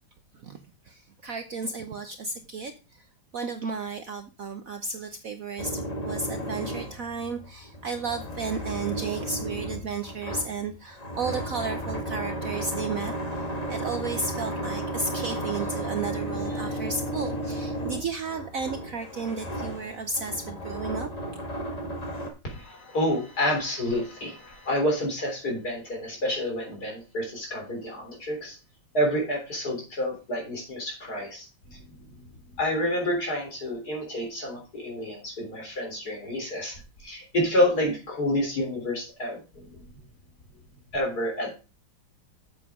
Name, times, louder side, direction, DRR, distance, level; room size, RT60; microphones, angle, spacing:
voice 1, 0.9-2.7 3.3-13.1 13.7-21.1, right 4 dB, 65° right, 8 dB, 0.9 m, -33 dB
sound 1, 5.6-22.3, right 1 dB, 20° left, 1.5 m, -34 dB
voice 2, 22.4-28.6 28.9-31.8 32.6-39.7 40.9-41.5, left 1 dB, 45° left, 0 dB, 4.1 m, -29 dB
7.9 x 7.5 x 4.9 m, 0.31 s
omnidirectional pair, 2.2 m